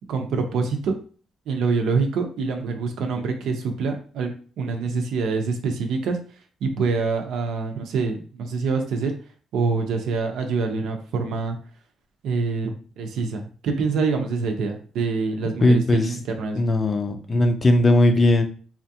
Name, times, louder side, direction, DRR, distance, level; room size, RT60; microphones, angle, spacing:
voice 1, 0.1-1.0 1.5-6.2 6.6-9.1 9.5-11.6 12.2-16.7, right 4 dB, 75° right, 4 dB, 0.7 m, -25 dB
voice 2, 15.6-16.2 16.6-18.4, left 1 dB, 25° left, 5 dB, 0.4 m, -18 dB
4.2 x 2.4 x 2.8 m, 0.41 s
cardioid pair, 165°, 0 cm